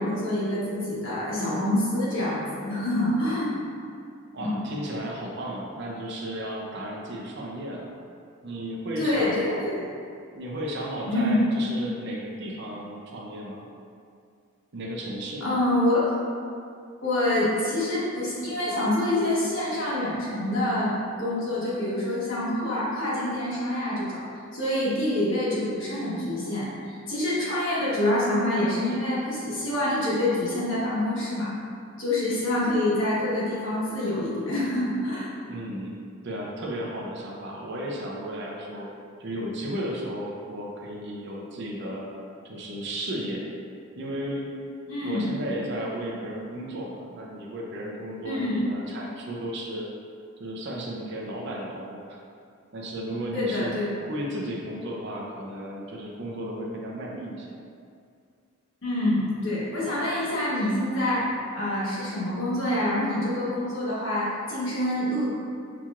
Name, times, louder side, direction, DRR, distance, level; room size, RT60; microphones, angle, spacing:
voice 1, 0.0-3.5 4.4-4.6 9.0-9.8 11.1-11.3 15.4-16.1 17.0-24.2 24.5-31.5 32.0-35.3 44.9-45.2 48.2-48.6 53.3-54.0 58.8-61.3 61.5-65.3, left 1 dB, 60° left, -8 dB, 1.2 m, -26 dB
voice 2, 4.3-7.9 8.4-9.6 10.3-13.6 14.7-15.4 35.5-36.0 36.2-38.9 39.2-42.1 42.4-43.4 44.0-44.5 45.0-49.8 50.4-52.2 52.7-53.8 54.1-57.6, right 1 dB, 55° right, -2 dB, 0.6 m, -34 dB
6.0 x 2.9 x 2.4 m, 2.3 s
head